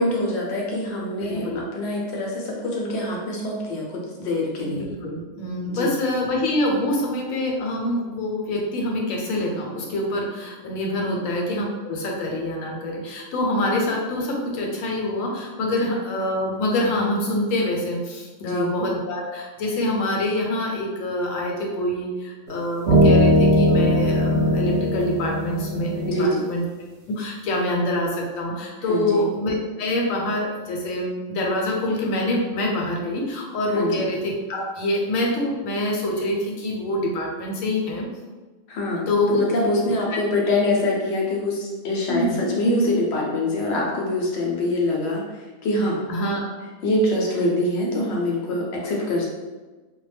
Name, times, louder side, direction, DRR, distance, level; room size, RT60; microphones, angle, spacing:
voice 1, 0.0-4.9 5.7-5.9 11.0-11.2 18.4-18.7 26.0-26.4 28.9-29.3 33.7-34.1 38.7-46.0 46.8-49.3, left 1 dB, 65° left, -2 dB, 0.8 m, -24 dB
voice 2, 1.2-1.6 4.6-26.6 27.1-38.1 39.1-39.4 39.8-39.9 42.1-42.4 46.1-46.4, left 1 dB, 90° left, -1 dB, 1.0 m, -25 dB
sound 1, 22.5-22.6 22.9-26.2, equal, 65° right, 0.8 m, -19 dB
2.2 x 2.1 x 3.2 m, 1.3 s
omnidirectional pair, 1.3 m